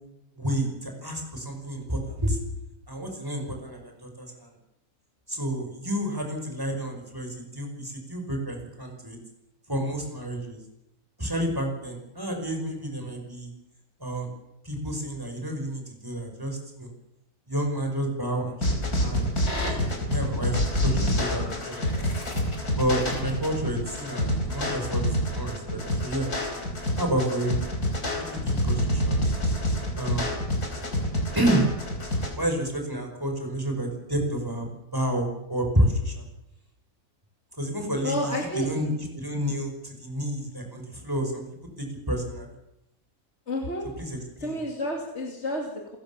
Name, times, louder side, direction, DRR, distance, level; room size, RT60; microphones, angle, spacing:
voice 1, 0.4-2.4 2.9-4.5 5.3-9.2 9.7-10.6 11.2-13.5 14.0-14.3 14.6-16.9 17.5-19.5 19.9-21.6 22.0-22.1 22.8-26.3 27.0-27.6 28.1-29.3 30.0-30.4 31.3-31.6 32.4-36.2 37.6-41.4 41.8-42.5 44.0-44.6, right 1 dB, 15° right, 3 dB, 5.3 m, -30 dB
sound 1, 18.6-32.3, left 1 dB, 80° left, 4.8 m, -27 dB
voice 2, 38.0-38.7 43.5-43.9 44.4-46.0, left 1 dB, 45° left, 1 dB, 3.1 m, -30 dB
29.5 x 15.5 x 7.2 m, 0.86 s
omnidirectional pair, 1.6 m